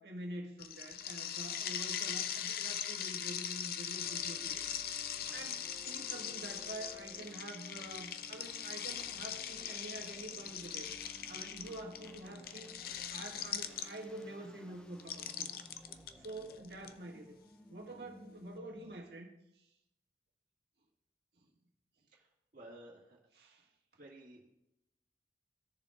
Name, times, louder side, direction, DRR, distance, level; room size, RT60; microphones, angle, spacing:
voice 1, 0.0-4.6 4.9-10.9 11.3-12.8 13.1-15.5 16.2-17.3 17.7-19.3 23.3-23.7, right 1 dB, 70° right, 0 dB, 1.6 m, -47 dB
sound 1, 0.6-14.2 15.0-16.9, left 9 dB, 55° left, 0.5 m, -40 dB
sound 2, 4.0-19.2, equal, 5° left, 0.5 m, -57 dB
voice 2, 22.5-23.2 24.0-24.5, right 1 dB, 50° right, -5 dB, 1.9 m, -53 dB
16.5 x 6.9 x 2.4 m, 0.88 s
head